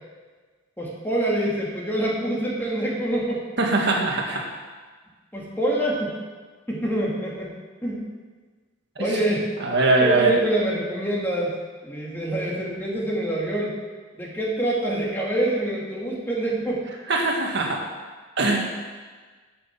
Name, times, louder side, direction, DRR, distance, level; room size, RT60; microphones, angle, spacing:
voice 1, 0.8-3.4 5.3-6.2 6.7-7.5 7.8-8.1 9.0-9.5 10.0-11.5 11.8-13.7 14.2-16.9, right 1 dB, 10° left, -4 dB, 2.4 m, -26 dB
voice 2, 3.6-4.4 9.0-9.1 9.6-10.4 17.1-17.8 18.4-18.6, right 3 dB, 60° right, 0 dB, 2.0 m, -21 dB
11.0 x 6.4 x 7.5 m, 1.4 s
head